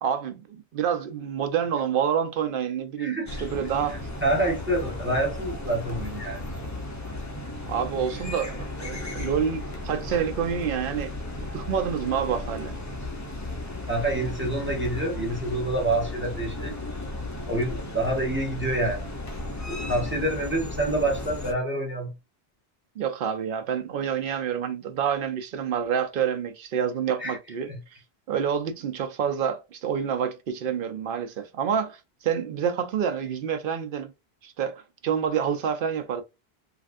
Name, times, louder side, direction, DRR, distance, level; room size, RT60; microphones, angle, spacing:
voice 1, 0.0-4.0 7.6-12.7 23.0-27.7 28.3-34.1 34.4-36.2, right 8 dB, 60° right, 0.7 m, -28 dB
sound 1, 3.3-21.5, left 2 dB, 20° left, 0.5 m, -35 dB
voice 2, 4.2-6.4 13.9-16.7 17.5-19.1 19.7-22.1 27.2-27.4 27.7-27.8, right 1 dB, 10° right, 1.0 m, -27 dB
3.2 x 2.5 x 2.4 m
omnidirectional pair, 1.1 m